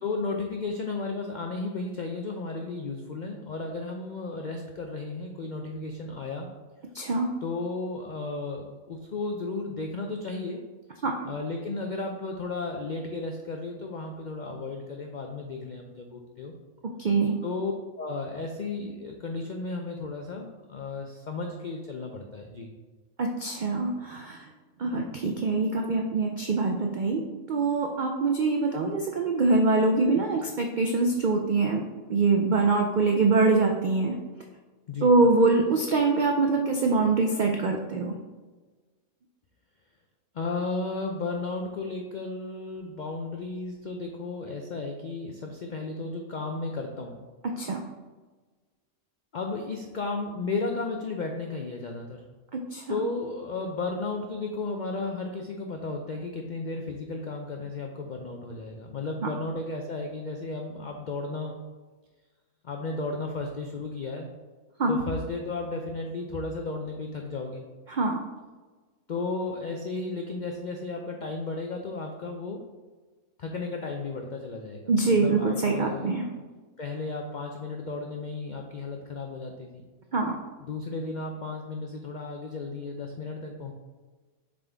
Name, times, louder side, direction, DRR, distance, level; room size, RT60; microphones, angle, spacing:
voice 1, 0.0-6.5 7.4-10.6 11.2-16.5 17.4-22.8 34.9-35.1 40.3-47.2 49.3-52.2 52.9-61.6 62.6-64.3 64.9-67.6 69.1-72.6 73.4-76.1 76.8-79.8 80.7-83.7, left 3 dB, 80° left, 2 dB, 0.4 m, -34 dB
voice 2, 6.9-7.3 11.0-11.1 17.0-17.3 23.2-24.4 24.8-31.8 32.1-34.2 35.0-38.2 47.6-47.8 52.5-53.0 59.2-59.3 64.8-65.0 67.9-68.2 74.9-76.3 80.1-80.3, right 3 dB, 80° right, 2 dB, 0.4 m, -24 dB
7.2 x 3.8 x 3.4 m, 1.3 s
omnidirectional pair, 1.5 m